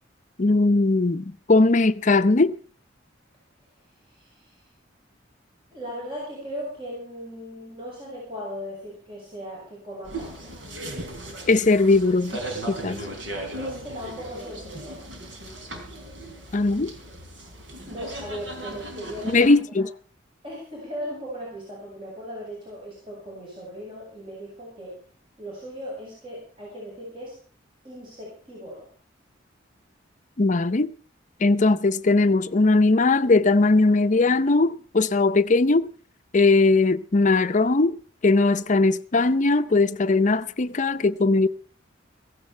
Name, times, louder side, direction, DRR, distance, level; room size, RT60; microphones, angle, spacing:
voice 1, 0.4-2.5 11.5-12.4 12.7-13.0 16.5-16.9 19.2-19.9 30.4-30.9 31.4-35.9 36.3-38.0 38.2-41.5, left 3 dB, 40° left, 0.6 m, -19 dB
voice 2, 4.1-4.6 5.7-10.6 13.6-15.1 17.9-19.5 20.4-24.9 25.4-27.3 27.8-28.9, equal, 30° right, 6.9 m, -37 dB
sound 1, 10.0-19.5, right 1 dB, 75° right, 4.1 m, -37 dB
16.5 x 15.5 x 4.5 m
head